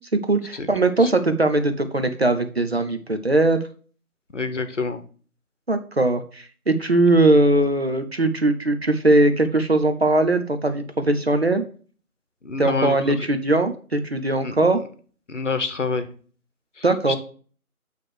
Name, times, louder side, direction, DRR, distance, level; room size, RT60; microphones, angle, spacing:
voice 1, 0.1-3.6 5.7-11.7 12.6-14.8 16.8-17.2, right 2 dB, 45° right, 9 dB, 0.7 m, -20 dB
voice 2, 4.3-5.0 12.4-13.3 14.4-14.5 15.3-16.1 16.8-17.2, left 4 dB, 55° left, 10 dB, 1.0 m, -27 dB
8.2 x 3.3 x 6.3 m, 0.42 s
figure-of-eight pair, 170°, 45 cm